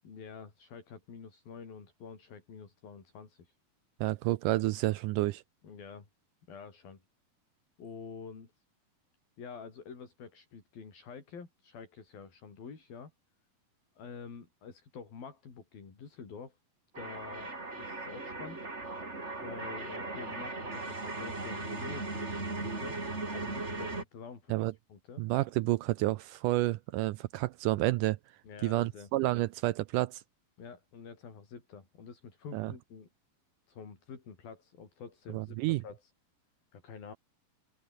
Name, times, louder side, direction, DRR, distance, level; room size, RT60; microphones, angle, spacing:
voice 1, 0.0-3.6 5.6-6.1 6.5-7.0 7.8-8.6 9.4-13.1 14.0-16.6 17.0-18.6 19.4-23.0 23.3-24.6 24.9-25.2 28.4-29.1 30.6-33.1 33.7-36.1 36.7-37.2, left 6 dB, 70° left, 6.8 m, -48 dB
voice 2, 4.0-5.4 24.5-24.7 25.2-28.2 28.6-30.2 32.5-32.7 35.3-35.8, right 17 dB, 85° right, 1.9 m, -30 dB
sound 1, 16.9-24.0, right 3 dB, 20° right, 3.4 m, -38 dB
open air
omnidirectional pair, 4.3 m